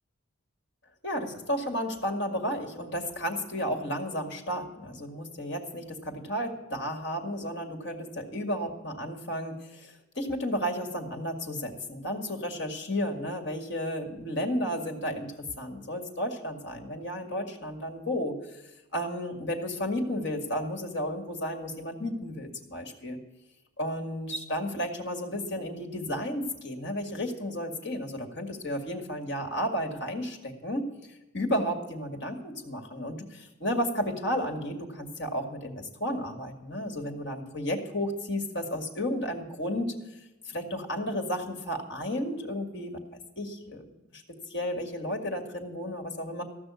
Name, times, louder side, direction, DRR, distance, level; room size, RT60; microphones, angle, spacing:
voice 1, 1.0-15.3 15.6-23.2 23.8-39.9 40.5-43.0 43.4-44.2 44.5-46.4, equal, 55° left, 3 dB, 2.1 m, -33 dB
15.0 x 6.1 x 9.5 m, 0.99 s
head